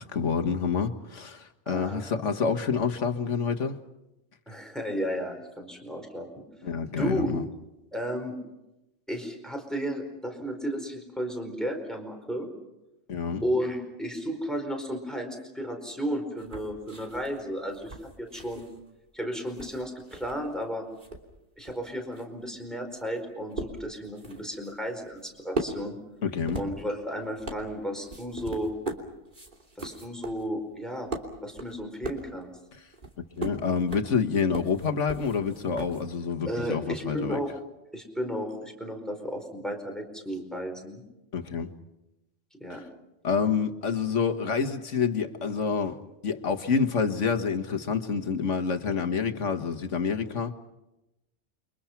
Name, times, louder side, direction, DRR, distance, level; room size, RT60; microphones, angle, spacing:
voice 1, 0.0-3.8 6.6-7.4 13.1-13.4 26.2-26.6 32.7-32.8 33.2-37.4 41.3-41.7 42.7-42.8 43.2-50.5, left 5 dB, 85° left, 1.9 m, -28 dB
voice 2, 1.7-2.2 4.5-6.4 6.9-7.3 7.9-8.3 9.1-12.5 13.4-18.6 19.1-20.8 21.6-26.0 26.6-28.7 29.8-31.1 31.4-32.5 36.4-37.5 37.9-41.0 42.6-42.8, equal, ahead, 4.5 m, -33 dB
sound 1, 16.4-20.6 20.9-36.3, right 2 dB, 45° right, 3.3 m, -40 dB
29.5 x 24.5 x 5.9 m
omnidirectional pair, 1.2 m